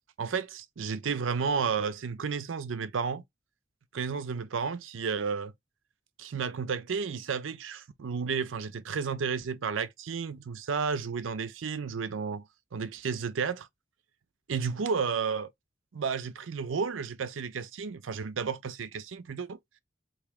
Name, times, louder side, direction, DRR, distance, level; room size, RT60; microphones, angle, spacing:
voice 1, 0.2-3.2 3.9-5.5 6.2-13.7 14.5-15.5 15.9-19.6, right 5 dB, 90° right, 0.5 m, -32 dB
3.4 x 2.7 x 3.5 m
head